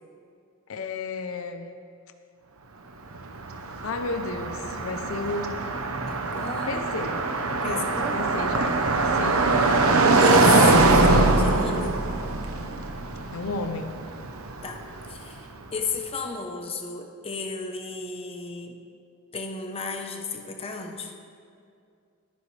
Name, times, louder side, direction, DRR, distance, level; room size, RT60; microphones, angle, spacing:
voice 1, 0.7-1.8 3.8-5.7 6.7-7.3 7.6-8.9 9.1-9.6 13.3-13.9, left 3 dB, 70° left, 8 dB, 0.6 m, -33 dB
Car passing by, 3.1-15.1, right 3 dB, 85° right, 1.0 m, -22 dB
voice 2, 6.0-6.9 7.6-8.2 10.2-12.0 14.6-14.8 15.1-18.7 19.3-21.1, left 4 dB, 25° left, 3 dB, 0.9 m, -33 dB
20.0 x 9.8 x 3.3 m, 2.4 s
head